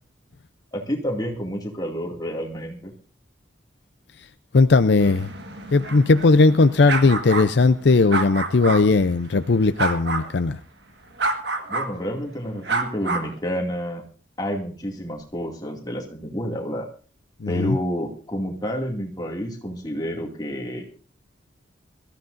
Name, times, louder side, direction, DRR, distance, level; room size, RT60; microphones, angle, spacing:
voice 1, 0.7-2.9 11.7-14.0 14.4-16.9 17.5-20.9, equal, 20° left, 2.3 m, -29 dB
voice 2, 4.5-5.3 5.7-10.6 17.4-17.8, left 3 dB, 65° left, 0.5 m, -18 dB
sound 1, 5.0-8.8 9.8-10.3 11.2-11.9 12.6-13.3, right 3 dB, 60° right, 1.6 m, -28 dB
23.0 x 14.0 x 2.6 m
head